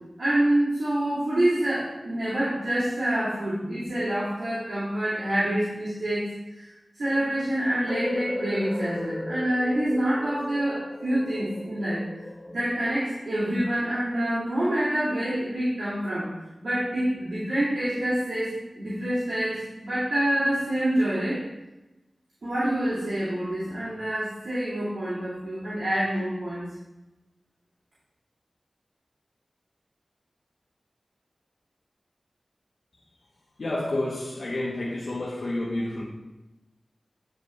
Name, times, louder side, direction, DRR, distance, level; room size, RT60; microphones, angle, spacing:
voice 1, 0.2-6.7 7.0-12.0 12.5-16.3 16.6-21.4 22.4-26.7, right 1 dB, 90° right, -12 dB, 2.6 m, -27 dB
sound 1, 7.9-13.7, left 2 dB, 35° left, 0.6 m, -36 dB
voice 2, 33.6-36.0, left 1 dB, 80° left, -4 dB, 1.0 m, -29 dB
9.4 x 4.9 x 3.2 m, 1.0 s
wide cardioid pair, 55°, 0 cm